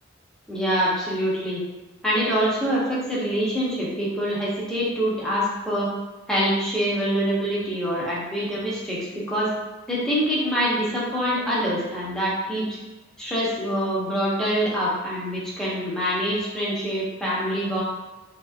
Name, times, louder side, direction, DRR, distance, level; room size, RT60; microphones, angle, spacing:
voice 1, 0.5-1.6 2.0-5.9 6.3-9.5 9.9-12.7 13.2-17.8, equal, 5° left, -7 dB, 0.7 m, -25 dB
2.9 x 2.8 x 2.4 m, 1.1 s
head